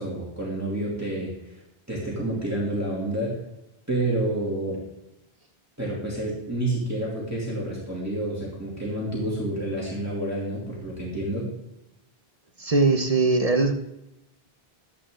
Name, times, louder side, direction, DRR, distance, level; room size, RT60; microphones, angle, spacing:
voice 1, 0.0-1.6 1.9-3.4 3.9-4.8 5.8-11.5, right 1 dB, 15° right, -6 dB, 2.6 m, -29 dB
voice 2, 12.6-13.7, right 3 dB, 40° right, 5 dB, 1.0 m, -20 dB
12.5 x 8.7 x 3.7 m, 0.91 s
omnidirectional pair, 1.0 m